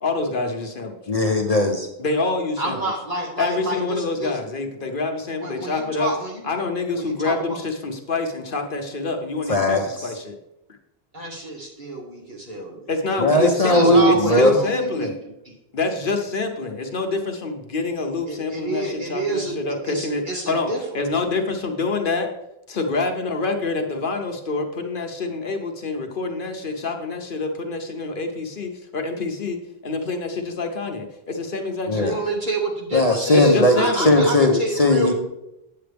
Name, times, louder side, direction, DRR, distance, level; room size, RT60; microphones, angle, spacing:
voice 1, 0.0-1.0 2.0-2.8 3.4-6.1 6.4-10.4 12.9-15.1 15.7-22.3 22.7-32.1 33.3-34.2, left 3 dB, 60° left, 4 dB, 1.0 m, -26 dB
voice 2, 1.1-1.9 9.5-10.1 13.2-14.6 31.9-32.1 32.9-35.1, left 1 dB, 40° left, 2 dB, 0.9 m, -18 dB
voice 3, 2.6-4.4 5.4-6.5 6.9-7.6 11.1-12.9 13.5-15.1 18.3-19.6 19.9-20.8 31.9-35.1, right 1 dB, 50° right, -3 dB, 2.1 m, -28 dB
8.7 x 7.8 x 3.4 m, 0.86 s
omnidirectional pair, 1.0 m